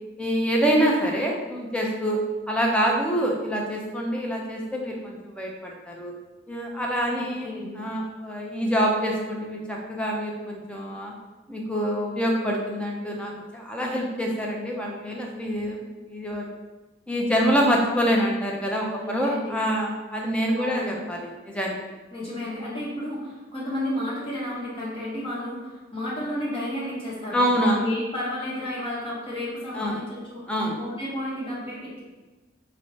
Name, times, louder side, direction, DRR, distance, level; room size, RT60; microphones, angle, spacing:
voice 1, 0.2-2.2 2.5-6.1 6.5-7.5 7.7-11.1 11.5-16.5 17.1-21.8 27.3-27.8 29.7-30.0 30.5-30.8, equal, 5° left, -1 dB, 0.4 m, -26 dB
voice 2, 7.1-7.7 19.0-19.5 20.6-20.8 22.1-27.4 27.7-30.5 30.8-32.0, left 1 dB, 30° left, -7 dB, 0.9 m, -32 dB
4.5 x 2.1 x 2.8 m, 1.2 s
head